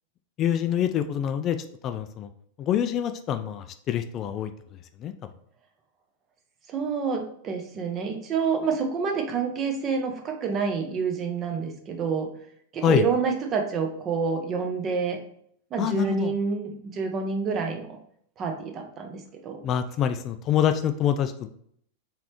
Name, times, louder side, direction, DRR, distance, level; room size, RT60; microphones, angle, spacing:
voice 1, 0.4-2.3 2.6-4.5 5.0-5.1 12.8-13.1 15.8-16.3 19.6-21.5, left 9 dB, 35° left, 9 dB, 0.3 m, -26 dB
voice 2, 6.7-12.3 12.7-15.2 15.7-18.0 18.4-19.6, right 5 dB, 35° right, 4 dB, 0.8 m, -28 dB
4.0 x 3.2 x 3.0 m, 0.66 s
hypercardioid pair, 95°, 0 cm